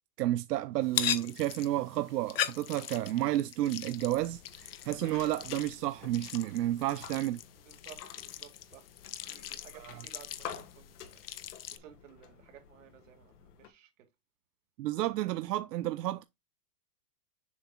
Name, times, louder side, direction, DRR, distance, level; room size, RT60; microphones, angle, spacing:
voice 1, 0.2-7.4 9.8-10.0 14.8-16.2, right 14 dB, 85° right, 0.7 m, -31 dB
sound 1, 0.8-11.8, left 11 dB, 40° left, 0.4 m, -40 dB
sound 2, 4.0-13.7, left 8 dB, 80° left, 1.7 m, -50 dB
voice 2, 7.6-8.9 9.2-11.2 11.7-13.9, right 10 dB, 55° right, 2.2 m, -55 dB
7.1 x 6.2 x 2.3 m
supercardioid pair, 175°, 47 cm